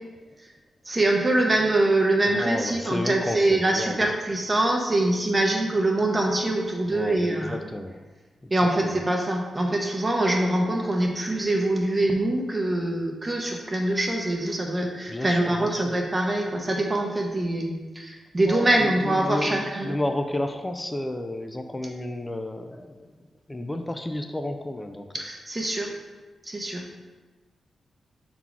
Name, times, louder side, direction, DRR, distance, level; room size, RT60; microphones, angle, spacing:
voice 1, 0.8-7.6 8.5-20.0 25.1-25.9 26.4-26.8, right 1 dB, 20° right, 1 dB, 0.8 m, -24 dB
voice 2, 2.2-4.0 6.9-8.0 15.1-15.9 18.5-23.1 23.5-25.1, left 1 dB, 10° left, 6 dB, 0.4 m, -31 dB
5.7 x 4.0 x 4.6 m, 1.3 s
wide cardioid pair, 145°, 0 cm